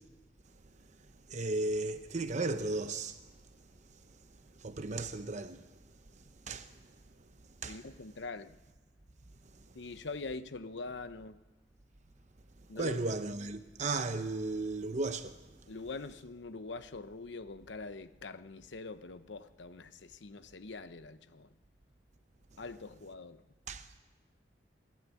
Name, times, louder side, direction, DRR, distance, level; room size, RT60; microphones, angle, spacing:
voice 1, 1.3-3.1 4.6-5.6 6.5-6.7 7.6-7.8 12.8-15.3 23.7-23.8, right 2 dB, 40° right, 0.8 m, -35 dB
voice 2, 7.6-8.6 9.7-11.4 12.7-13.0 15.7-21.5 22.6-23.4, left 3 dB, 90° left, 0.9 m, -44 dB
29.5 x 12.0 x 8.4 m
head